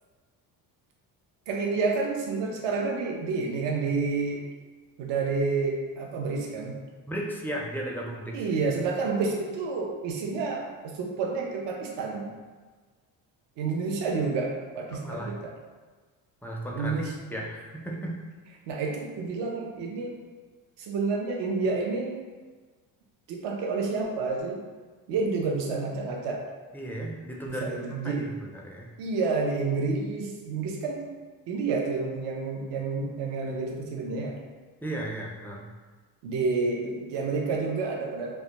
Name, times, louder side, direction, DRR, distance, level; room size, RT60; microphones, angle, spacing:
voice 1, 1.5-4.5 5.0-6.8 8.3-12.3 13.6-15.5 16.7-17.1 18.7-20.1 20.8-22.2 23.3-24.6 25.1-26.5 27.5-28.3 29.0-31.1 31.5-34.4 36.2-38.4, right 4 dB, 65° right, 0 dB, 0.6 m, -29 dB
voice 2, 7.1-8.4 15.0-15.3 16.4-17.0 17.3-18.2 26.7-28.9 34.8-35.7, right 1 dB, 5° left, -2 dB, 0.4 m, -35 dB
2.3 x 2.1 x 2.8 m, 1.4 s
supercardioid pair, 70°, 45 cm